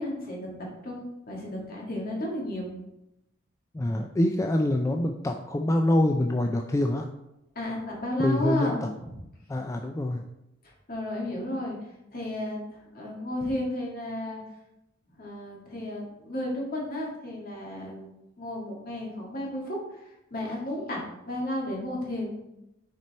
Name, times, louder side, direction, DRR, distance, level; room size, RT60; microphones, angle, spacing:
voice 1, 0.0-2.7 7.6-9.2 10.9-11.8 12.1-14.4 15.2-22.3, left 1 dB, 50° left, -2 dB, 1.9 m, -33 dB
voice 2, 3.7-7.1 8.2-8.7 9.5-10.2, left 1 dB, 15° left, 4 dB, 0.3 m, -25 dB
6.2 x 4.4 x 4.2 m, 0.89 s
head